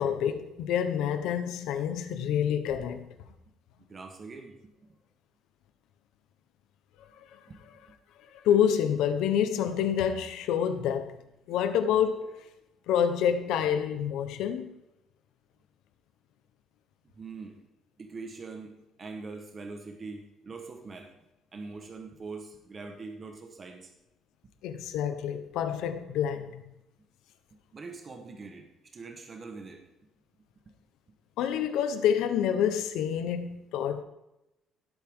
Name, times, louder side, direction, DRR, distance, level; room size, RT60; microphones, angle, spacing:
voice 1, 0.0-3.1 8.4-11.2 11.5-12.3 12.9-14.7 24.6-26.6 31.4-34.0, left 8 dB, 85° left, 1.1 m, -27 dB
voice 2, 3.8-5.0 7.5-7.6 7.9-8.0 17.1-17.6 18.0-21.1 21.5-23.9 27.5-28.7 28.9-29.8 30.7-30.8, right 4 dB, 25° right, 1.3 m, -43 dB
17.0 x 8.2 x 3.8 m
cardioid pair, 165°, 0 cm